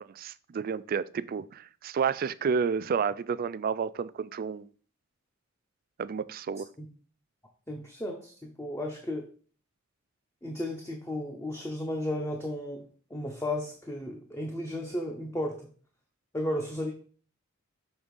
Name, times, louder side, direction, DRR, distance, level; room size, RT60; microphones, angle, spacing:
voice 1, 0.1-4.7 6.0-6.7, right 6 dB, 45° right, 17 dB, 0.3 m, -30 dB
voice 2, 7.7-9.3 10.4-15.7 16.3-16.9, left 1 dB, 15° left, 1 dB, 0.8 m, -34 dB
6.5 x 3.5 x 5.2 m, 0.41 s
head